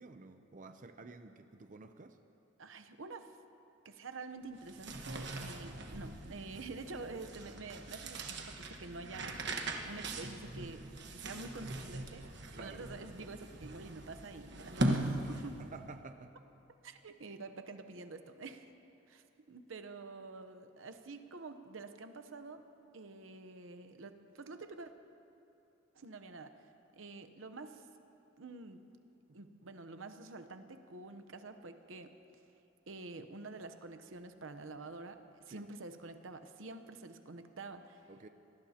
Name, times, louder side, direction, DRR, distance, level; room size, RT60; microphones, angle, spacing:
voice 1, 0.0-2.2 12.5-12.8 15.6-16.3 35.5-35.7 38.1-38.3, right 3 dB, 40° right, 7 dB, 0.6 m, -51 dB
voice 2, 2.6-3.4 3.8-9.4 9.8-10.9 11.1-15.6 16.8-18.7 19.1-22.6 22.9-24.9 25.9-26.5 26.9-27.8 28.4-28.8 29.3-32.1 32.9-38.1, right 3 dB, 85° right, 9 dB, 0.9 m, -48 dB
sound 1, 4.5-15.7, right 1 dB, 60° right, 1.3 m, -40 dB
25.5 x 19.0 x 2.9 m, 2.9 s
head